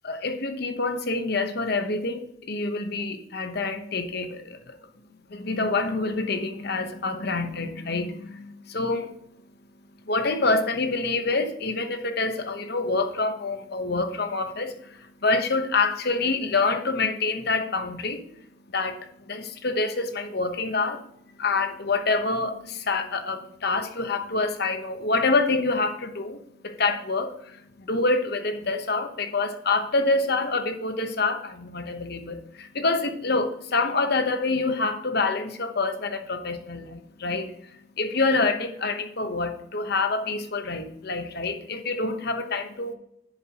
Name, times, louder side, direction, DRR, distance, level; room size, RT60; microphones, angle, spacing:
voice 1, 0.0-4.7 5.3-42.9, left 3 dB, 50° left, 1.0 m, -27 dB
10.5 x 7.3 x 3.0 m
head